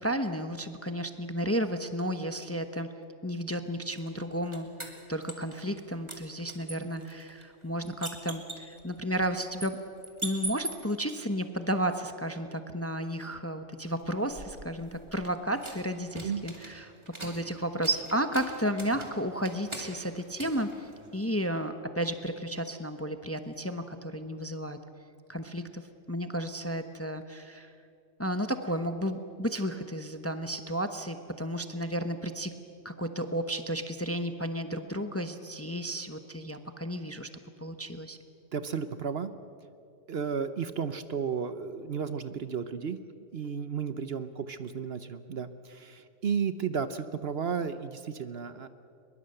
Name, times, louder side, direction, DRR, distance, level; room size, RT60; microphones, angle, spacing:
voice 1, 0.0-2.9 3.2-4.7 5.1-9.8 10.2-16.9 17.2-24.8 25.3-25.8 26.1-27.7 28.2-32.5 32.8-37.3 37.6-38.2, equal, 15° left, 8 dB, 0.8 m, -33 dB
sound 1, 3.9-5.8 6.1-11.1 13.9-21.4, right 2 dB, 20° right, 2.4 m, -43 dB
voice 2, 38.5-39.3 40.1-43.0 43.3-48.7, right 6 dB, 55° right, 11 dB, 1.0 m, -33 dB
22.5 x 22.0 x 7.8 m, 2.4 s
omnidirectional pair, 1.3 m